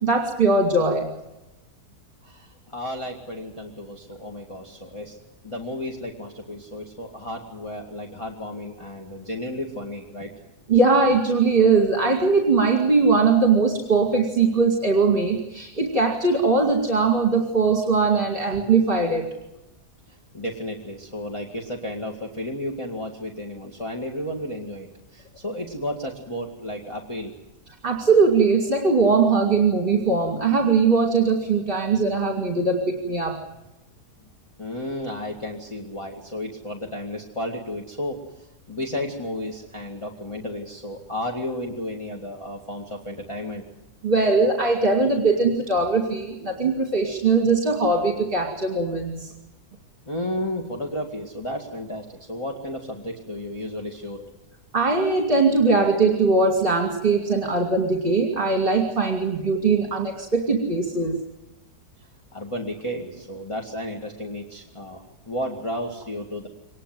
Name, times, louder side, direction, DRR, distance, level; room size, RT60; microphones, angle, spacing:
voice 1, 0.0-1.1 10.7-19.2 27.8-33.4 44.0-49.3 54.7-61.2, right 4 dB, 35° right, 2 dB, 2.6 m, -20 dB
voice 2, 2.2-5.2 5.4-10.3 20.3-27.4 34.6-43.6 50.1-54.2 62.3-66.5, left 1 dB, 20° left, 1 dB, 2.1 m, -33 dB
24.5 x 20.0 x 7.7 m, 0.97 s
omnidirectional pair, 1.8 m